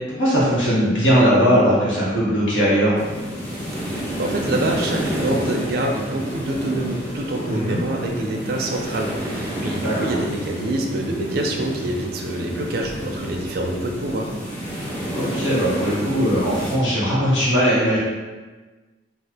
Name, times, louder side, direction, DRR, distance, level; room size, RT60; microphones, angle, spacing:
voice 1, 0.1-3.0 7.5-7.8 9.8-10.2 15.1-18.0, equal, 85° left, -8 dB, 1.2 m, -19 dB
sound 1, 2.9-16.7, equal, 10° left, 1.1 m, -29 dB
voice 2, 3.7-14.3, right 1 dB, 50° right, 1 dB, 0.4 m, -26 dB
2.6 x 2.3 x 3.4 m, 1.3 s
head